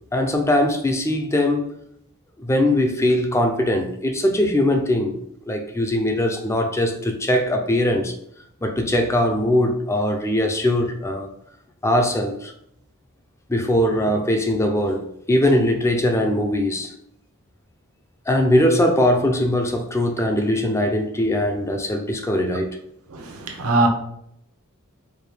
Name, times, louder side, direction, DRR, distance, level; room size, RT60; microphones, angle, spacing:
voice 1, 0.1-1.8 2.4-5.2 5.5-8.1 8.6-11.3 11.8-12.5 13.5-16.9 18.3-22.8, left 1 dB, 15° left, 0.4 m, -21 dB
voice 2, 23.1-23.9, right 2 dB, 75° right, 0.7 m, -21 dB
4.6 x 2.3 x 3.3 m
head